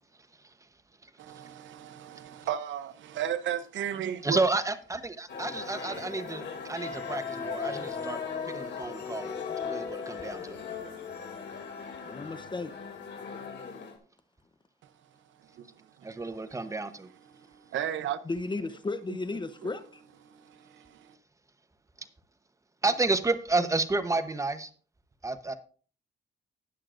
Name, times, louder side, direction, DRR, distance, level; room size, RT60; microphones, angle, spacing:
voice 1, 1.2-4.4 15.5-15.7 16.0-16.1 17.5-18.2 19.6-19.7 20.2-21.1, right 10 dB, 70° right, 0.8 m, -34 dB
voice 2, 4.2-8.2 8.4-9.3 9.6-10.6 16.0-17.1 22.8-24.7 25.2-25.5, right 3 dB, 15° right, 0.9 m, -30 dB
sound 1, 5.3-14.0, left 6 dB, 60° left, 2.6 m, -38 dB
voice 3, 12.0-12.8 18.2-20.0, left 3 dB, 25° left, 0.8 m, -34 dB
19.5 x 6.5 x 2.5 m
cardioid pair, 90°, 20 cm